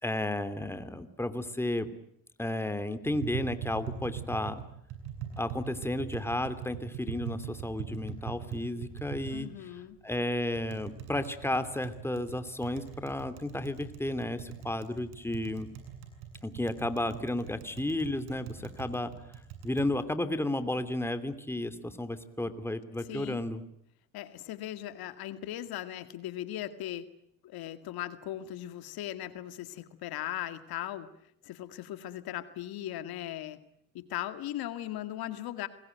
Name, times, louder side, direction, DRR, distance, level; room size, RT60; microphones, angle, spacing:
voice 1, 0.0-1.9 2.4-4.6 5.4-9.5 10.0-15.7 16.4-19.1 19.6-23.6, left 1 dB, 5° left, 10 dB, 2.9 m, -33 dB
Tap, 3.0-19.9, right 8 dB, 80° right, 8.0 m, -42 dB
voice 2, 9.3-10.0 23.0-23.4 24.1-27.1 27.4-31.1 31.4-33.6 33.9-35.7, left 13 dB, 70° left, 11 dB, 2.1 m, -38 dB
28.5 x 21.0 x 9.3 m, 0.74 s
supercardioid pair, 85°, 38 cm